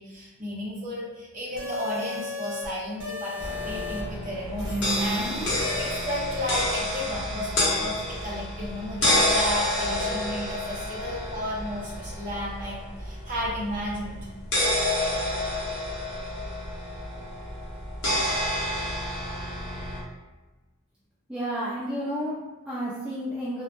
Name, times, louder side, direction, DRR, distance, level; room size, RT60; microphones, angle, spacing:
voice 1, 0.0-14.3, left 1 dB, 40° right, -5 dB, 0.6 m, -33 dB
sound 1, 1.6-2.7 3.0-4.0 4.6-5.9, left 1 dB, 85° right, 0.9 m, -33 dB
sound 2, 3.4-20.0, left 1 dB, 55° left, 0.7 m, -29 dB
voice 2, 21.3-23.6, equal, 5° right, -9 dB, 0.3 m, -31 dB
2.0 x 2.0 x 3.0 m, 1.1 s
head